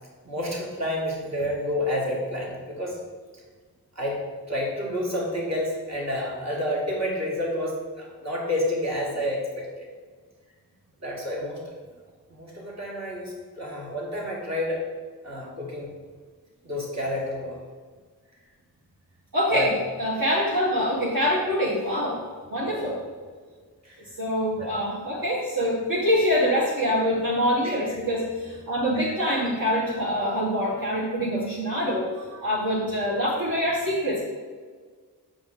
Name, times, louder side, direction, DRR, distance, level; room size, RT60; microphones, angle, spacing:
voice 1, 0.2-3.0 4.0-4.2 4.5-9.9 11.0-11.6 12.3-14.8 15.2-15.9 16.6-17.6 19.5-19.7 22.6-22.9 23.8-24.1 24.6-24.7 27.6-27.7 28.9-29.1 32.8-32.9, left 1 dB, 45° right, -3 dB, 2.0 m, -29 dB
voice 2, 19.3-19.7 20.0-22.2 22.5-23.0 24.2-34.2, equal, 60° right, -7 dB, 1.6 m, -25 dB
7.1 x 4.9 x 3.8 m, 1.5 s
cardioid pair, 45°, 37 cm